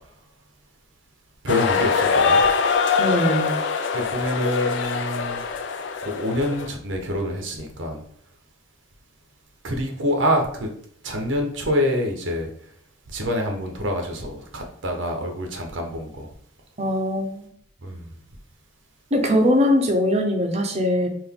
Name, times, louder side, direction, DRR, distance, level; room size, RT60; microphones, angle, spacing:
voice 1, 1.4-2.4 3.9-5.4 6.0-8.0 9.6-10.7 11.0-12.5 13.1-16.3 17.8-18.1, equal, 85° right, 3 dB, 0.8 m, -26 dB
sound 1, 1.5-6.7, left 5 dB, 70° left, 0.4 m, -23 dB
voice 2, 3.0-3.6 16.8-17.5 19.1-21.1, left 1 dB, 35° right, 3 dB, 0.7 m, -21 dB
3.9 x 2.5 x 3.5 m, 0.64 s
head